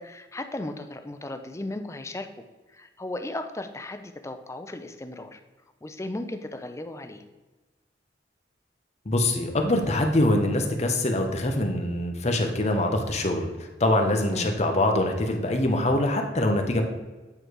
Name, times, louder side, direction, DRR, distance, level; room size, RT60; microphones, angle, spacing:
voice 1, 0.0-2.3 2.7-5.4 5.8-7.2 14.3-14.5, left 1 dB, 15° left, 7 dB, 0.5 m, -36 dB
voice 2, 9.1-13.5 13.8-16.8, left 1 dB, 40° left, 4 dB, 0.8 m, -24 dB
8.7 x 3.3 x 4.6 m, 1.2 s
head